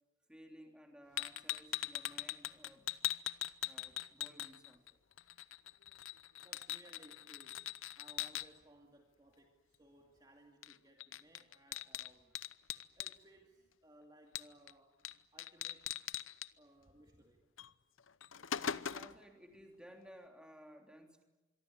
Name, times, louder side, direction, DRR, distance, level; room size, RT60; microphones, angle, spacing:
voice 1, 0.3-2.9 3.6-5.0 18.8-21.2, equal, 5° right, 2 dB, 3.2 m, -57 dB
sound 1, 1.2-4.9 5.2-8.5 10.6-10.7 11.0-13.2 14.4-14.7 15.0-15.1 15.4-16.5 17.6-17.7 18.1-19.2, left 11 dB, 85° left, 0.8 m, -41 dB
voice 2, 6.4-7.7 7.9-12.4 13.0-15.0 15.3-16.0 16.6-17.5, right 1 dB, 20° right, 2 dB, 2.4 m, -62 dB
25.5 x 23.0 x 9.9 m, 1.1 s
head